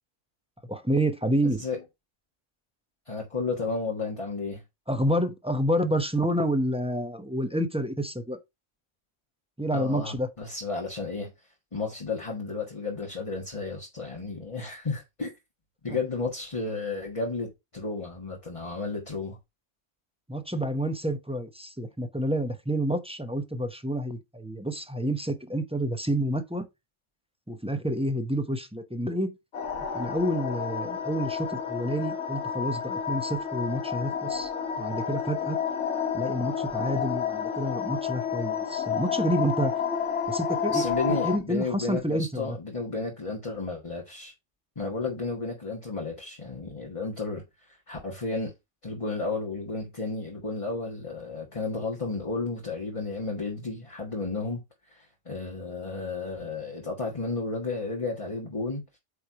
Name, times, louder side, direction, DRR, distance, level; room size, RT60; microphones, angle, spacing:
voice 1, 0.7-1.6 4.9-8.4 9.6-10.3 15.9-16.0 20.3-26.7 27.5-29.4 29.9-34.5 34.8-35.6 36.1-39.7 40.3-42.6, right 1 dB, 5° right, 0.8 m, -29 dB
voice 2, 1.4-1.8 3.1-4.6 9.7-11.3 11.7-15.4 15.8-19.4 40.7-44.3 44.7-48.5 48.8-59.0, left 3 dB, 25° left, 1.6 m, -33 dB
sound 1, 29.5-41.4, left 7 dB, 70° left, 1.4 m, -30 dB
8.6 x 3.4 x 4.5 m
omnidirectional pair, 1.3 m